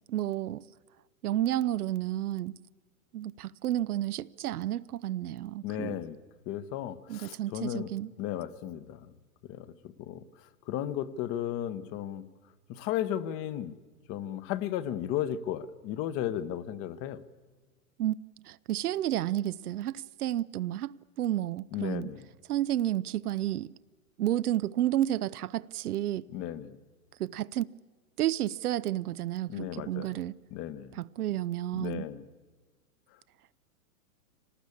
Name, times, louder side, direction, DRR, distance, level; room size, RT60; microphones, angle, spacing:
voice 1, 0.1-0.6 1.2-2.5 3.1-6.0 7.1-8.1 18.0-18.2 18.4-22.1 22.5-23.7 24.2-26.3 27.2-27.7 28.2-30.3 31.0-32.1, right 13 dB, 85° right, 0.7 m, -31 dB
voice 2, 5.6-6.2 6.5-7.9 8.2-9.1 9.5-12.2 12.7-13.7 14.1-17.2 21.7-22.3 26.3-26.8 29.5-30.2 30.5-31.0 31.7-32.3, left 11 dB, 30° left, 1.0 m, -35 dB
25.0 x 19.0 x 8.5 m
hypercardioid pair, 140°, 44 cm